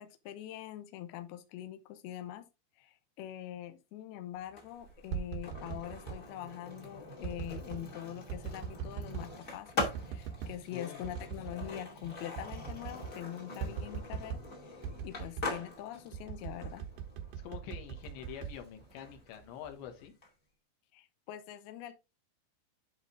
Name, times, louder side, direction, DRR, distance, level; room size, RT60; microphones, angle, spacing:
voice 1, 0.0-2.5 2.8-16.9 20.9-21.9, left 12 dB, 90° left, 2.2 m, -44 dB
Skateboard, 4.4-20.3, left 2 dB, 40° left, 1.1 m, -44 dB
sound 1, 4.9-6.2 7.2-7.9 8.3-9.3 9.8-10.6 11.0-11.8 12.0-12.1 12.4-13.2 13.6-14.5 14.8-15.6 16.1-19.2 19.6-20.1, right 7 dB, 90° right, 1.9 m, -41 dB
voice 2, 17.4-20.1, left 9 dB, 70° left, 3.4 m, -46 dB
10.0 x 3.9 x 3.8 m
omnidirectional pair, 5.7 m